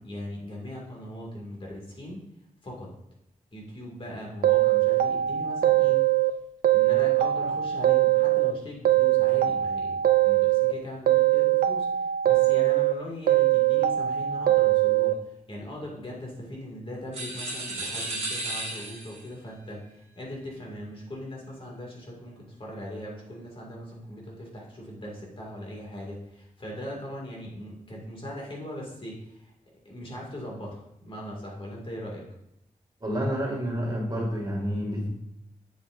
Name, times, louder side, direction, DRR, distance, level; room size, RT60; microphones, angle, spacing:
voice 1, 0.0-2.2 2.6-2.9 3.5-6.0 6.7-29.5 29.8-32.2, left 1 dB, 40° left, -2 dB, 2.1 m, -40 dB
sound 1, 4.4-6.3 6.6-8.5 8.8-10.7 11.1-12.9 13.3-15.1, right 14 dB, 90° right, 0.4 m, -22 dB
sound 2, 17.1-19.3, right 2 dB, 45° right, 1.7 m, -34 dB
voice 2, 33.0-35.1, equal, 30° right, -2 dB, 2.0 m, -29 dB
7.4 x 7.3 x 2.5 m, 0.78 s
wide cardioid pair, 120°, 14 cm